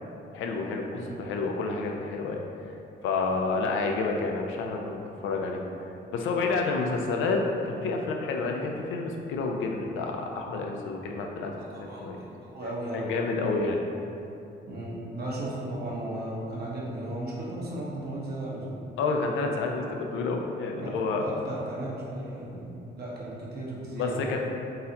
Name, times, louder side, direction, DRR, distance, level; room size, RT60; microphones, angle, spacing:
voice 1, 0.3-0.9 1.2-2.4 3.0-5.6 6.1-7.4 7.7-12.2 12.9-13.8 19.0-21.2 24.0-24.4, left 3 dB, 80° left, 1 dB, 0.5 m, -29 dB
voice 2, 11.6-13.0 14.7-18.8 20.8-24.1, right 1 dB, 55° right, -5 dB, 0.9 m, -36 dB
3.8 x 2.7 x 2.7 m, 2.7 s
cardioid pair, 90°, 20 cm